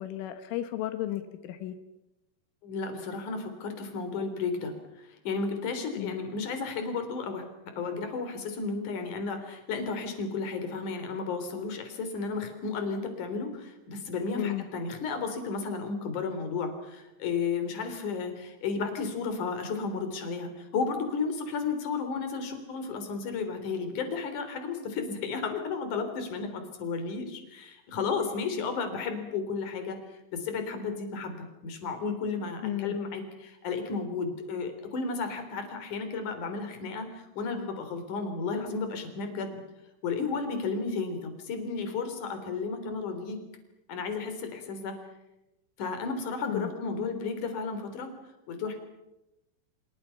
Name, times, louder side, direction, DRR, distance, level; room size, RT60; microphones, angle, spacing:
voice 1, 0.0-1.8 6.0-6.1 14.3-14.7 32.6-33.0 46.5-46.7, left 13 dB, 80° left, 9 dB, 3.9 m, -33 dB
voice 2, 2.6-4.7 5.1-39.6 40.0-43.4 43.9-45.0 45.8-48.1 48.5-48.8, left 4 dB, 45° left, 7 dB, 4.7 m, -33 dB
29.0 x 27.0 x 5.9 m, 0.93 s
omnidirectional pair, 5.6 m